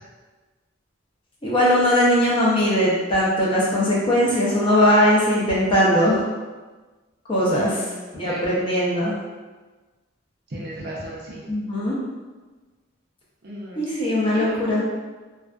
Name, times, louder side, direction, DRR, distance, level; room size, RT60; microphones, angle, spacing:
voice 1, 1.4-6.2 7.3-7.8 8.1-9.2 11.5-12.0 13.8-14.8, equal, 25° left, -6 dB, 0.5 m, -20 dB
voice 2, 7.5-8.6 10.5-11.4 13.4-14.0 14.3-14.8, right 1 dB, 50° right, -4 dB, 0.5 m, -35 dB
2.4 x 2.4 x 2.2 m, 1.3 s
head